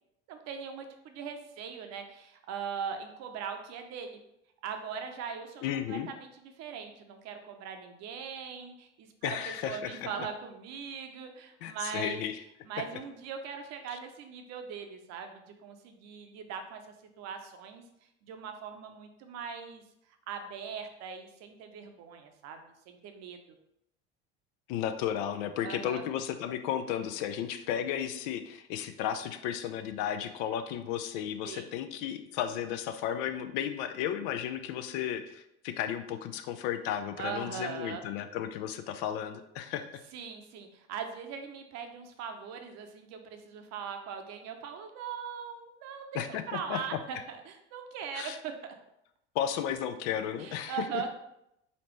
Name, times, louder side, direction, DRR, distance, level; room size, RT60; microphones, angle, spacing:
voice 1, 0.3-4.2 4.6-12.2 12.6-16.8 17.2-17.8 18.2-19.8 20.3-23.4 25.6-26.0 31.4-31.7 37.2-38.1 40.1-46.2 46.5-48.7 50.4-51.1, right 6 dB, 50° right, 6 dB, 0.8 m, -40 dB
voice 2, 5.6-6.1 9.2-10.1 11.6-12.4 13.9-14.0 24.7-40.0 46.1-46.4 46.7-47.0 48.1-48.4 49.3-50.9, left 10 dB, 55° left, 8 dB, 0.5 m, -34 dB
4.2 x 4.1 x 3.1 m, 0.81 s
figure-of-eight pair, 70°, 35 cm